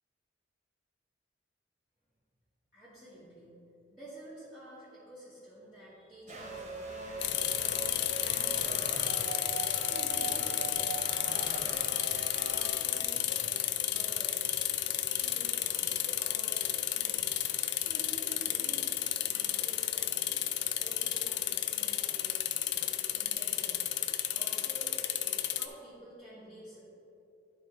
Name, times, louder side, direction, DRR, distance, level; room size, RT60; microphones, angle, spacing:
voice 1, 2.7-3.6 3.9-9.4 9.8-11.5 11.9-17.3 17.8-20.4 20.8-22.5 23.1-24.0 24.3-26.8, right 1 dB, ahead, -14 dB, 1.6 m, -51 dB
sound 1, 6.3-12.7, right 3 dB, 40° right, 1.0 m, -41 dB
sound 2, 7.2-25.7, left 12 dB, 65° left, 0.4 m, -32 dB
11.5 x 4.4 x 3.7 m, 2.7 s
head